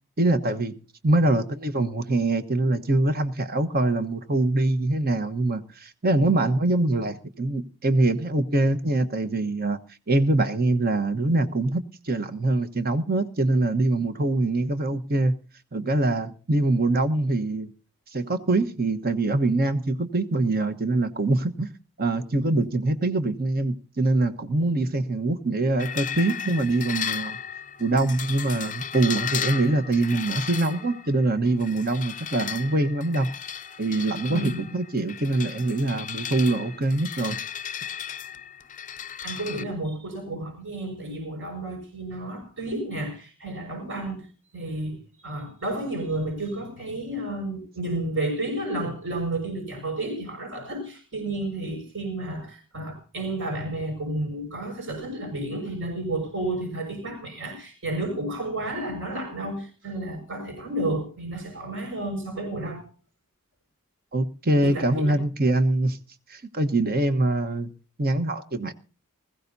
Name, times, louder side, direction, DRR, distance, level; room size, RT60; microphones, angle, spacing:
voice 1, 0.2-0.7 1.0-9.8 10.1-15.3 15.7-17.7 18.1-21.7 22.0-27.4 27.8-33.3 33.8-37.4 64.1-66.0 66.3-67.7 68.0-68.7, right 2 dB, 45° right, 1.3 m, -24 dB
sound 1, 25.8-39.6, left 8 dB, 35° left, 0.6 m, -35 dB
voice 2, 34.3-34.6 39.2-44.3 44.5-62.9 64.6-65.2, right 1 dB, 60° right, 6.5 m, -31 dB
20.5 x 15.5 x 2.8 m
head